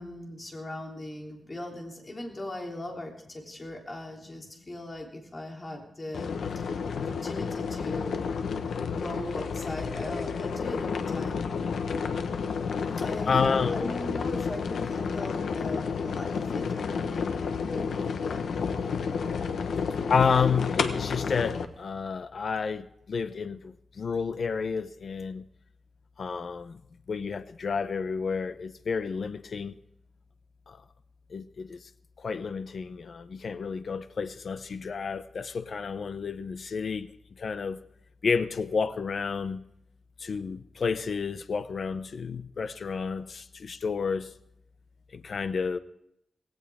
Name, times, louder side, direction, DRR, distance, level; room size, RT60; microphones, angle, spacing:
voice 1, 0.0-8.3 9.0-11.4 12.9-18.5, left 1 dB, 25° left, 3.3 m, -39 dB
sound 1, 6.1-21.7, left 5 dB, 80° left, 1.1 m, -31 dB
voice 2, 13.3-13.8 20.1-25.5 26.2-26.8 27.1-29.8 30.7-30.8 31.3-31.9 32.2-37.8 38.2-39.6 40.2-44.3 45.1-45.8, left 5 dB, 50° left, 0.6 m, -30 dB
18.0 x 17.0 x 3.6 m
wide cardioid pair, 170°, 0 cm